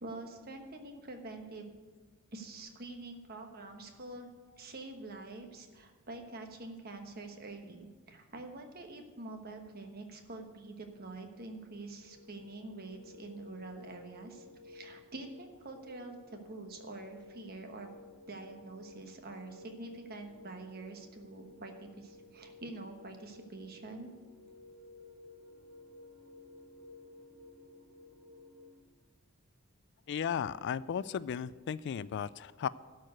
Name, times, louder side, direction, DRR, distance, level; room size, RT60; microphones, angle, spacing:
voice 1, 0.0-1.8 2.3-17.9 18.3-24.1, right 2 dB, 45° right, 4 dB, 1.2 m, -46 dB
sound 1, 11.9-28.8, left 2 dB, 75° right, 1.4 m, -55 dB
voice 2, 30.1-32.7, left 7 dB, 55° left, 18 dB, 0.3 m, -35 dB
12.0 x 4.7 x 7.9 m, 1.4 s
head